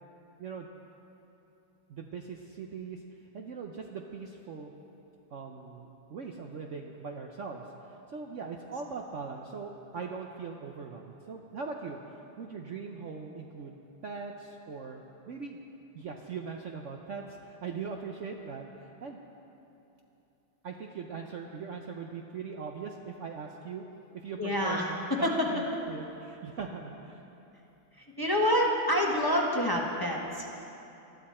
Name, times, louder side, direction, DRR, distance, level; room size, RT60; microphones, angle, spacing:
voice 1, 1.9-3.0 3.3-4.7 5.3-12.0 12.4-13.8 14.0-15.6 15.9-19.2 20.6-23.9 24.1-27.2, right 5 dB, 85° right, 2 dB, 0.6 m, -40 dB
voice 2, 24.4-25.5 27.9-30.5, equal, 15° left, -2 dB, 0.9 m, -27 dB
19.5 x 13.0 x 4.3 m, 2.9 s
omnidirectional pair, 2.3 m